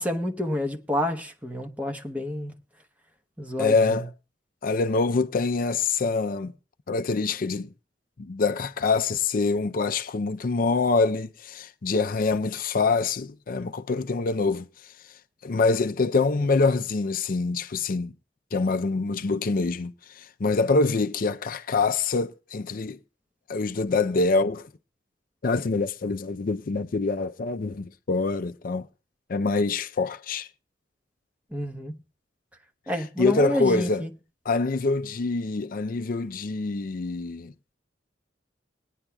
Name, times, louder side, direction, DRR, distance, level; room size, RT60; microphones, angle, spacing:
voice 1, 0.0-2.5 3.4-4.1 31.5-32.0 32.9-34.1, left 1 dB, 10° right, 1.0 m, -29 dB
voice 2, 3.6-4.1 4.6-6.5 6.9-7.7 8.2-14.7 15.4-18.1 18.5-23.0 23.5-24.7 25.4-28.9 29.3-30.5 33.2-34.0 34.5-37.5, left 3 dB, 50° left, 0.5 m, -25 dB
20.5 x 9.9 x 2.3 m
head